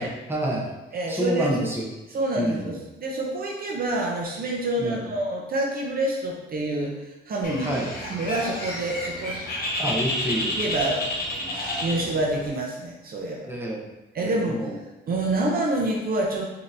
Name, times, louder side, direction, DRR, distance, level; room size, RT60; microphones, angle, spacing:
voice 1, 0.0-0.7 1.1-1.8 2.4-2.7 4.8-5.0 7.6-7.9 9.8-10.6 11.9-12.0 13.5-13.8 14.2-14.7, right 1 dB, 10° right, -3 dB, 0.9 m, -28 dB
voice 2, 0.9-1.6 2.1-7.7 8.0-9.4 10.2-10.3 10.6-11.0 11.8-13.5 14.1-14.7 15.1-16.5, right 1 dB, 50° right, -1 dB, 0.7 m, -27 dB
Bird, 7.4-12.5, left 1 dB, 50° left, 1.2 m, -30 dB
5.0 x 2.9 x 2.6 m, 1.0 s
cardioid pair, 90°, 20 cm